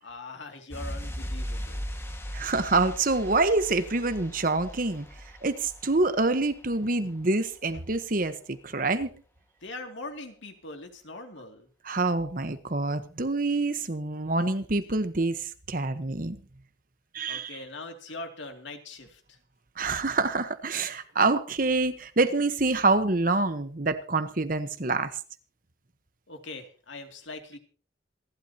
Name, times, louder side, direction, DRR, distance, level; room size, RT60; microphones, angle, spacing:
voice 1, 0.0-1.9 9.6-11.7 17.3-19.4 26.3-27.6, left 2 dB, 85° left, 2.6 m, -41 dB
sound 1, 0.7-7.2 7.5-7.6, equal, 15° left, 1.7 m, -38 dB
voice 2, 2.3-5.1 5.4-9.1 11.8-16.4 17.1-17.6 19.8-25.2, right 3 dB, 50° right, 1.1 m, -26 dB
27.0 x 12.0 x 2.9 m
head